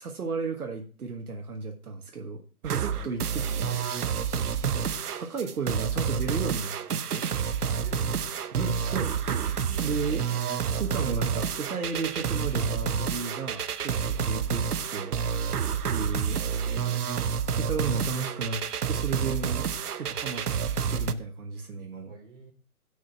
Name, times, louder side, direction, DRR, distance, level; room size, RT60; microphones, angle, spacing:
voice 1, 0.0-3.8 4.6-4.9 5.1-7.3 8.5-10.3 10.8-14.6 14.9-15.2 15.9-16.4 17.6-19.7 20.0-20.5 20.9-22.1, right 4 dB, 75° right, 3 dB, 1.4 m, -34 dB
sound 1, 2.6-21.1, right 7 dB, 90° right, 0.8 m, -29 dB
voice 2, 7.8-8.3 14.1-14.4 22.0-22.5, right 2 dB, 35° right, -1 dB, 4.2 m, -47 dB
9.7 x 5.1 x 4.6 m, 0.39 s
hypercardioid pair, 175°, 44 cm